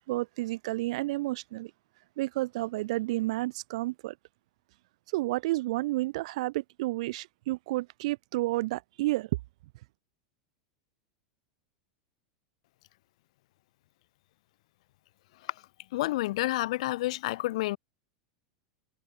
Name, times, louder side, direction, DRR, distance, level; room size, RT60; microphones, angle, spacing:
voice 1, 0.0-1.7 2.2-4.1 5.1-9.3, right 19 dB, 70° right, 6.0 m, -31 dB
voice 2, 15.9-17.8, left 17 dB, 70° left, 3.4 m, -29 dB
hypercardioid pair, 110°, 4 cm